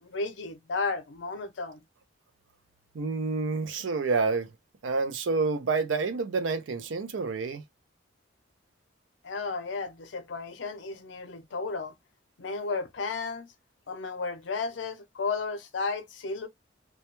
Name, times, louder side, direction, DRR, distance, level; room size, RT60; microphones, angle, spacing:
voice 1, 0.0-1.8 9.2-11.9 12.4-13.5 13.9-16.5, left 4 dB, 75° left, 0.5 m, -33 dB
voice 2, 2.9-4.5 4.8-7.6, right 4 dB, 80° right, 0.5 m, -28 dB
2.2 x 2.1 x 2.9 m
head